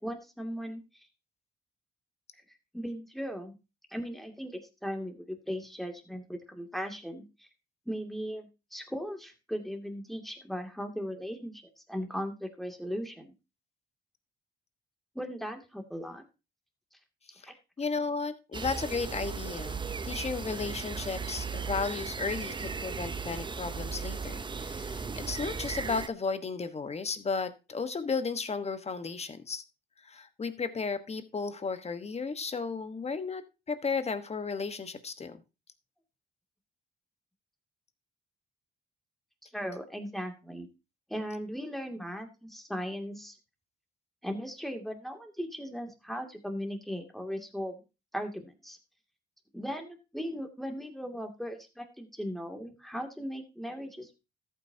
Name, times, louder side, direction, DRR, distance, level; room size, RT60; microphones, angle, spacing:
voice 1, 0.0-0.8 2.7-3.6 3.9-7.5 7.9-11.6 11.9-13.3 15.1-16.2 17.4-17.5 39.4-40.7 41.1-43.4 44.2-47.8 48.1-48.8 49.5-54.2, equal, ahead, 4 dB, 2.4 m, -38 dB
voice 2, 17.8-29.6 30.0-35.4, left 4 dB, 30° left, 11 dB, 1.3 m, -34 dB
sound 1, 18.5-26.1, right 5 dB, 25° right, 0.7 m, -36 dB
13.5 x 8.6 x 2.8 m, 0.27 s
cardioid pair, 90°, 20 cm